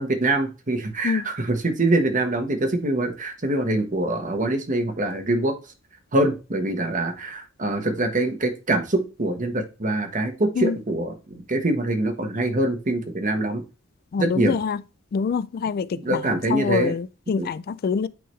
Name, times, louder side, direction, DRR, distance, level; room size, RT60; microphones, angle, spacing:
voice 1, 0.0-5.5 6.1-13.6 14.2-14.5 16.0-16.9 17.4-17.5, right 2 dB, 40° right, 1.2 m, -24 dB
voice 2, 14.1-14.8 15.1-18.1, left 5 dB, 50° left, 0.3 m, -25 dB
9.3 x 3.8 x 3.2 m
head